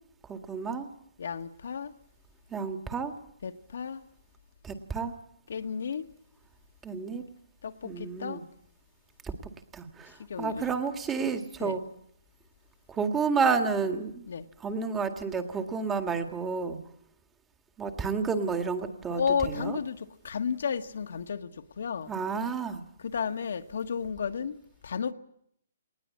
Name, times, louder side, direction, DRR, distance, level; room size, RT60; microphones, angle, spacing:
voice 1, 0.2-0.9 2.5-3.1 4.6-5.1 6.8-7.2 7.8-8.4 9.2-11.8 12.9-14.3 14.6-16.8 17.8-19.8 22.1-22.8, right 5 dB, 10° right, 1.9 m, -31 dB
voice 2, 1.2-1.9 3.4-4.0 5.5-6.0 7.6-8.4 10.3-10.7 11.6-11.8 14.3-14.5 19.1-21.5 21.8-22.1 23.0-24.6 24.8-25.1, left 6 dB, 70° left, 1.6 m, -32 dB
20.5 x 20.0 x 8.5 m
hypercardioid pair, 155°, 0 cm